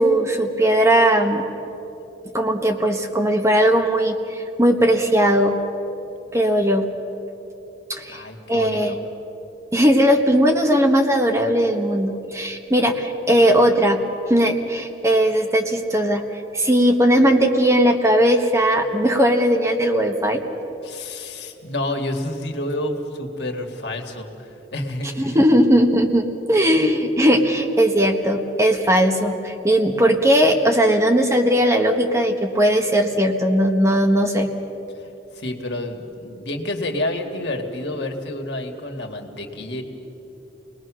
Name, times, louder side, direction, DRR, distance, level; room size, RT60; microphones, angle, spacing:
voice 1, 0.0-1.4 2.3-5.6 6.3-6.9 7.9-8.2 8.5-9.0 9.7-14.0 14.3-16.2 16.5-20.4 25.2-34.5, equal, 15° right, 3 dB, 1.4 m, -18 dB
voice 2, 8.1-9.0 20.8-25.4 35.3-39.8, left 1 dB, 70° left, 3 dB, 2.1 m, -29 dB
28.0 x 20.0 x 6.3 m, 3.0 s
head